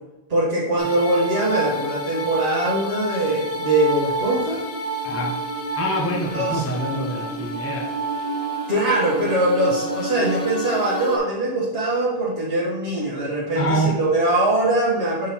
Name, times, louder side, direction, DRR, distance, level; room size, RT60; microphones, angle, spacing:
voice 1, 0.3-4.6 6.2-6.6 8.7-15.3, right 1 dB, 65° right, -7 dB, 1.5 m, -22 dB
sound 1, 0.8-11.2, right 2 dB, 75° left, 1.0 m, -29 dB
voice 2, 5.0-5.3 5.7-8.0 13.6-14.0, right 1 dB, 15° left, 0 dB, 0.5 m, -25 dB
6.4 x 3.7 x 4.3 m, 0.99 s
omnidirectional pair, 1.1 m